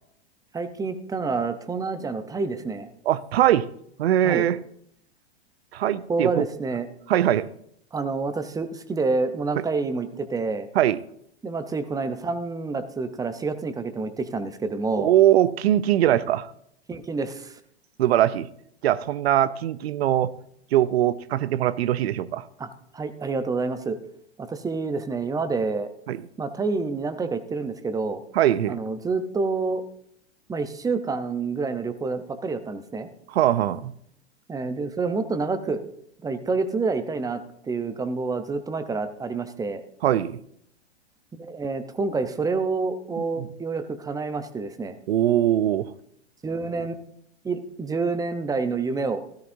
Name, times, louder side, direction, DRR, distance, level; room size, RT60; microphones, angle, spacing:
voice 1, 0.5-2.9 4.2-4.5 6.1-6.9 7.9-10.7 11.4-15.1 16.9-17.6 22.6-22.7 22.9-24.0 24.4-25.9 26.4-28.2 28.7-29.8 30.5-33.1 34.5-35.8 36.2-39.8 41.3-45.0 46.4-47.0 47.4-49.2, right 4 dB, 10° right, 0.7 m, -28 dB
voice 2, 3.1-3.7 4.0-4.6 5.7-6.4 7.1-7.5 10.7-11.0 15.0-16.5 18.0-18.5 18.8-20.3 20.7-22.5 26.1-26.2 28.3-28.8 33.3-33.9 40.0-40.4 43.2-43.5 45.1-45.9, right 12 dB, 70° right, 0.7 m, -21 dB
13.5 x 13.0 x 2.7 m
hypercardioid pair, 110°, 33 cm